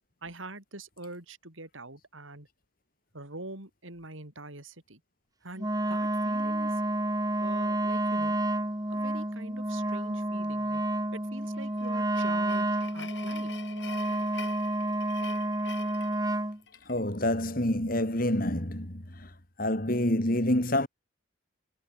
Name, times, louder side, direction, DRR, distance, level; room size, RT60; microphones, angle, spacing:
voice 1, 0.2-2.5 3.1-5.0 5.4-6.8 7.4-8.4 8.9-10.8 11.1-13.5, right 2 dB, 80° right, 6.1 m, -44 dB
Wind instrument woodwind instrument, 5.6-16.6, right 1 dB, 20° right, 2.2 m, -30 dB
sound 1, 11.5-17.0, left 6 dB, 60° left, 5.0 m, -46 dB
voice 2, 16.9-19.3 19.6-20.9, left 1 dB, 45° left, 3.0 m, -27 dB
head